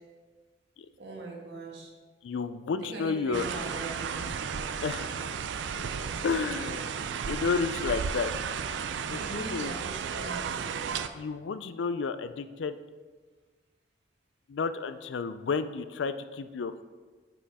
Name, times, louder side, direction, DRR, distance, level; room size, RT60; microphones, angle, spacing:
voice 1, 1.0-1.9 2.8-4.3 6.4-6.8 9.1-10.4, right 2 dB, 70° right, -1 dB, 1.5 m, -41 dB
voice 2, 2.2-3.4 4.8-5.1 6.2-6.9 7.3-8.3 9.1-9.7 11.1-12.8 14.5-16.8, left 5 dB, 85° left, 12 dB, 0.4 m, -31 dB
sound 1, 3.3-11.1, right 6 dB, 90° right, 0.4 m, -34 dB
8.7 x 5.0 x 3.5 m, 1.4 s
head